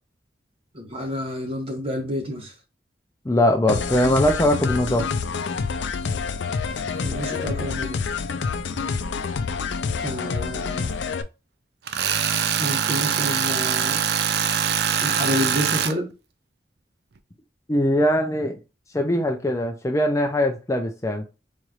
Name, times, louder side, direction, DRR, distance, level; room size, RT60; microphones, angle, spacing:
voice 1, 0.7-2.5 6.6-8.1 10.0-11.0 12.6-14.0 15.0-16.1, equal, 30° right, 1.2 m, -29 dB
voice 2, 3.3-5.1 17.7-18.6 18.9-21.2, left 1 dB, 15° left, 0.4 m, -21 dB
sound 1, 3.7-11.2, left 5 dB, 80° left, 0.4 m, -27 dB
Tools, 11.9-15.9, right 8 dB, 60° right, 0.4 m, -23 dB
4.2 x 3.1 x 2.4 m
head